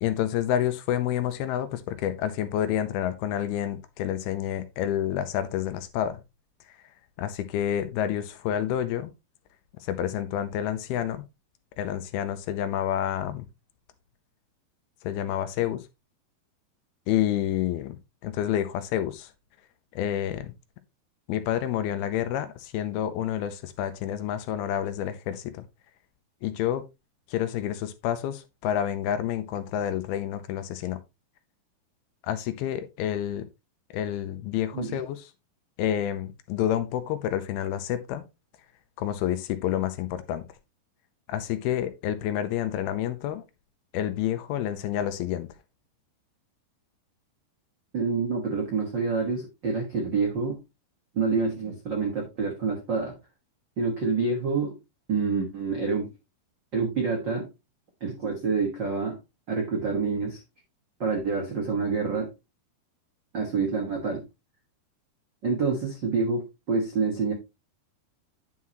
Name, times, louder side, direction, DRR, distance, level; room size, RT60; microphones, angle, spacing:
voice 1, 0.0-6.2 7.2-9.1 9.8-11.2 11.8-13.5 15.0-15.8 17.1-19.3 19.9-20.5 21.3-25.6 26.4-26.8 27.3-31.0 32.2-33.4 33.9-35.3 35.8-38.2 39.0-40.4 41.3-43.4 43.9-45.5, left 11 dB, 85° left, 2.5 m, -29 dB
voice 2, 47.9-50.6 51.1-53.1 53.8-54.7 55.1-56.1 56.7-57.5 58.0-59.2 59.5-60.4 61.0-62.3 63.3-64.2 65.4-67.3, right 4 dB, 70° right, 1.0 m, -27 dB
9.6 x 5.7 x 3.0 m
omnidirectional pair, 4.6 m